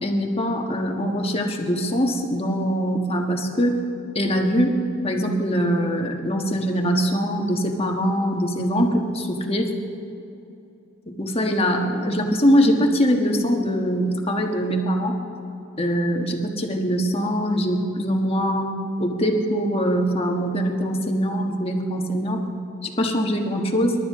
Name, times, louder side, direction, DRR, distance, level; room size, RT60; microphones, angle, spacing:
voice 1, 0.0-3.8 4.1-4.8 5.0-9.7 11.2-15.2 15.8-18.7 19.0-22.4 22.8-24.0, equal, 30° left, 2 dB, 1.5 m, -22 dB
27.0 x 12.0 x 3.7 m, 2.7 s
head